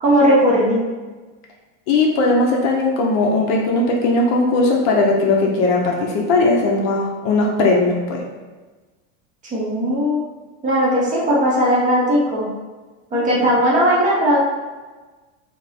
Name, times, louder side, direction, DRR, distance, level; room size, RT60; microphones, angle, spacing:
voice 1, 0.0-0.8 9.5-10.2 10.6-12.5 13.1-14.4, equal, 20° right, -5 dB, 0.8 m, -17 dB
voice 2, 1.9-8.2 13.1-13.3, left 2 dB, 45° left, 0 dB, 0.7 m, -18 dB
3.3 x 2.9 x 4.1 m, 1.3 s
supercardioid pair, 160°, 37 cm